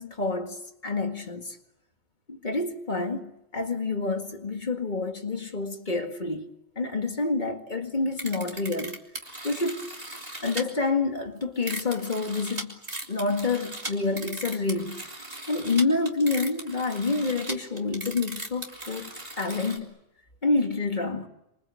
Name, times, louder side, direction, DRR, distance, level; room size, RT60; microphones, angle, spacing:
voice 1, 0.0-1.6 2.3-6.5 6.8-9.0 9.4-9.9 10.4-12.8 13.1-15.1 15.5-20.0 20.4-21.3, left 3 dB, 40° left, 2.1 m, -28 dB
sound 1, 8.1-10.6 11.4-19.8, right 1 dB, 30° right, 3.4 m, -38 dB
27.0 x 25.5 x 8.3 m
omnidirectional pair, 1.3 m